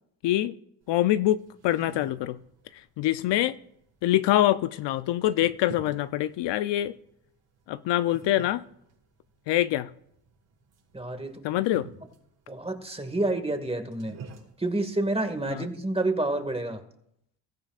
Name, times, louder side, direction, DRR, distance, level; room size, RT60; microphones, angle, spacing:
voice 1, 0.2-0.5 0.9-2.4 2.7-3.6 4.0-6.9 7.7-8.6 9.5-9.9 11.4-11.9 15.5-15.6, left 14 dB, 65° left, 0.7 m, -25 dB
sound 1, 0.8-16.7, right 4 dB, 60° right, 5.0 m, -51 dB
voice 2, 10.9-11.5 12.5-14.2 14.6-16.8, right 2 dB, 10° right, 2.0 m, -29 dB
22.5 x 13.5 x 2.5 m
supercardioid pair, 60°, 47 cm